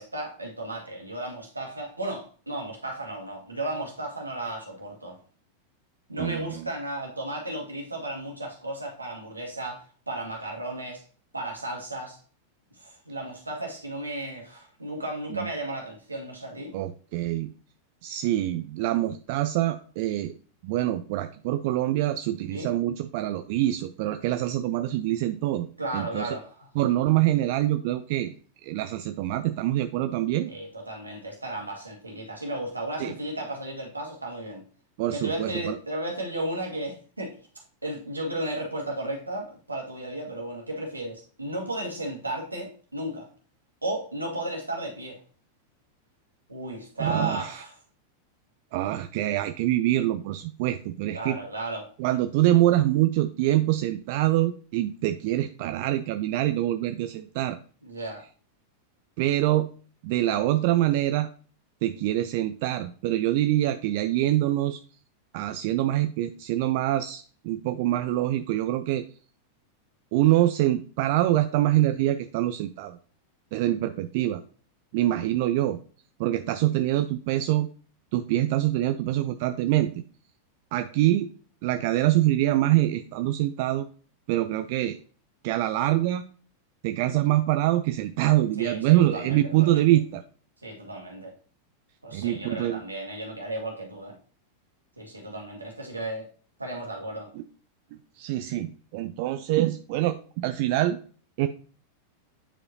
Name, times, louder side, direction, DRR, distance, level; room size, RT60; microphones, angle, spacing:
voice 1, 0.0-5.2 6.1-11.0 11.3-12.2 12.7-16.7 22.5-22.7 25.8-26.7 30.5-34.6 35.1-37.4 37.8-43.3 43.8-45.2 46.5-47.7 51.1-51.9 57.8-58.2 60.3-60.4 88.6-89.9 90.6-91.3 92.0-94.2 95.0-96.3 96.6-97.3, right 1 dB, 80° right, 1 dB, 1.7 m, -34 dB
voice 2, 6.2-6.7 15.3-15.5 16.7-17.5 18.0-20.3 20.6-25.7 25.9-26.4 26.8-28.3 28.6-30.5 33.0-33.1 35.0-35.8 47.0-47.6 48.7-51.4 52.0-57.6 59.2-59.7 60.0-61.3 61.8-64.8 65.3-69.1 70.1-73.0 73.5-74.4 74.9-75.8 76.2-77.7 78.1-80.0 80.7-81.3 81.6-83.9 84.3-85.0 85.4-86.2 86.8-90.2 92.1-92.8 97.3-97.4 97.9-101.0 101.4-101.5, right 14 dB, 50° right, 9 dB, 0.4 m, -25 dB
8.7 x 4.8 x 2.8 m, 0.41 s
figure-of-eight pair, 90°, 0 cm